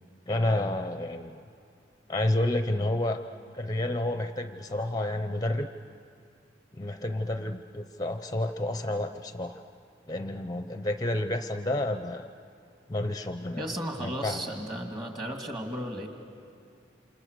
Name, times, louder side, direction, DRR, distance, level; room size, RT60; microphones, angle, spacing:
voice 1, 0.3-1.4 2.1-3.2 3.5-5.7 6.7-9.6 10.1-12.3 12.9-13.7 14.0-14.4, left 1 dB, 20° left, 8 dB, 0.6 m, -30 dB
voice 2, 13.6-16.1, equal, 25° right, 3 dB, 2.5 m, -34 dB
29.0 x 27.0 x 6.7 m, 2.4 s
head